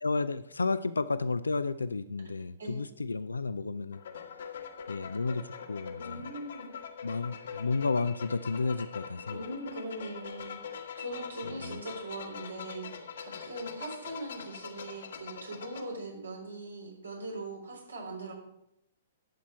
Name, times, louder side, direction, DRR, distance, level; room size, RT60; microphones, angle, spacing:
voice 1, 0.0-4.0 4.9-6.2 7.0-9.4 11.5-11.8, left 3 dB, 85° left, 14 dB, 0.4 m, -32 dB
sound 1, 3.9-15.8, left 7 dB, 65° left, 1.3 m, -43 dB
voice 2, 6.0-6.7 9.3-18.3, right 2 dB, 85° right, 0 dB, 3.6 m, -41 dB
11.5 x 7.4 x 4.4 m, 0.82 s
figure-of-eight pair, 120°, 0 cm